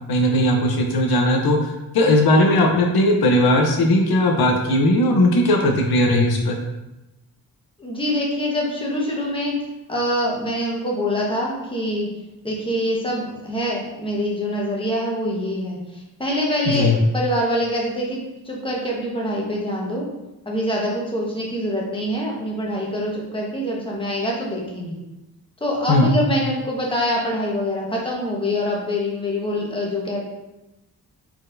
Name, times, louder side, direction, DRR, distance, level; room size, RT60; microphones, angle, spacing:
voice 1, 0.1-6.6 16.7-17.0 25.9-26.1, left 1 dB, 80° left, 2 dB, 0.7 m, -18 dB
voice 2, 7.8-9.5 9.9-12.1 12.4-20.0 20.4-25.0 25.6-30.2, equal, 15° left, -3 dB, 1.1 m, -25 dB
4.3 x 4.1 x 2.6 m, 0.97 s
wide cardioid pair, 115°, 37 cm